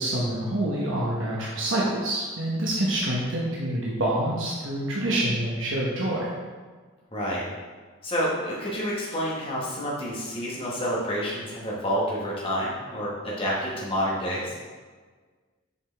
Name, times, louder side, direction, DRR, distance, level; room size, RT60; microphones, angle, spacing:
voice 1, 0.0-6.3, right 1 dB, 70° right, -5 dB, 1.1 m, -26 dB
voice 2, 7.1-7.5 8.0-14.5, equal, 25° left, -6 dB, 1.7 m, -29 dB
6.9 x 5.0 x 3.5 m, 1.5 s
head